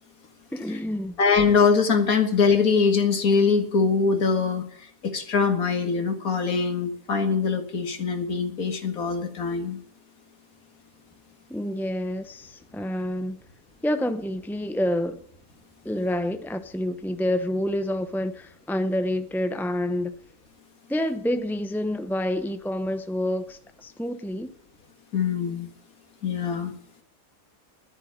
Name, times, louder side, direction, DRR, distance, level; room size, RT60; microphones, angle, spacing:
voice 1, 0.5-1.1 11.5-13.4 13.8-15.2 15.8-20.1 20.9-24.5, left 1 dB, 5° left, 0.4 m, -28 dB
voice 2, 1.2-9.8 25.1-25.7 26.2-26.7, left 5 dB, 90° left, 2.3 m, -23 dB
11.0 x 9.7 x 9.8 m
omnidirectional pair, 1.5 m